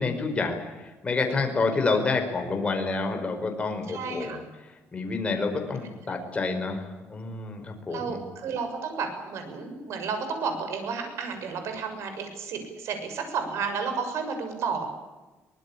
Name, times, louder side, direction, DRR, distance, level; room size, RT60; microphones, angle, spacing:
voice 1, 0.0-8.2, left 3 dB, 25° left, 4 dB, 5.1 m, -29 dB
voice 2, 3.9-4.4 7.9-14.9, right 5 dB, 70° right, 6 dB, 6.8 m, -32 dB
24.5 x 19.5 x 8.7 m, 1.2 s
cardioid pair, 140°, 5 cm